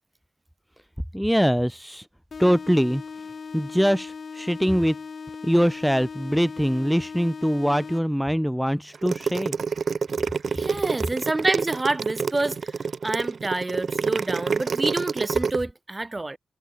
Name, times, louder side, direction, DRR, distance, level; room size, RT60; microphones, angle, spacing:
voice 1, 1.1-2.1 2.4-3.0 3.5-5.0 5.4-9.6, equal, ahead, 0.6 m, -23 dB
sound 1, 2.3-8.3, left 5 dB, 65° left, 1.4 m, -38 dB
sound 2, 8.9-15.6, right 5 dB, 70° right, 0.6 m, -27 dB
voice 2, 10.5-16.4, right 2 dB, 30° right, 3.1 m, -28 dB
cardioid pair, 55°, 0 cm